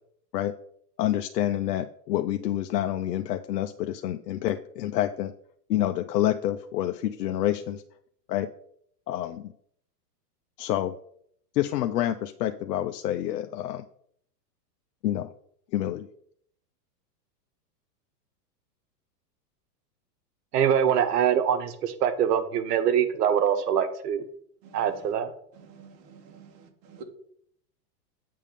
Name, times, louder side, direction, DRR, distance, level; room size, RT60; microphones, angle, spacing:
voice 1, 1.0-5.3 5.7-7.8 8.3-8.5 9.1-9.5 10.6-10.9 11.5-13.8 15.0-15.3 15.7-16.1, left 12 dB, 75° left, 7 dB, 0.7 m, -28 dB
voice 2, 20.5-24.2 24.7-25.3, right 8 dB, 70° right, 9 dB, 1.3 m, -24 dB
voice 3, 24.6-25.0 25.5-27.0, right 5 dB, 40° right, 4 dB, 1.6 m, -49 dB
8.4 x 3.7 x 6.8 m, 0.66 s
hypercardioid pair, 145°, 49 cm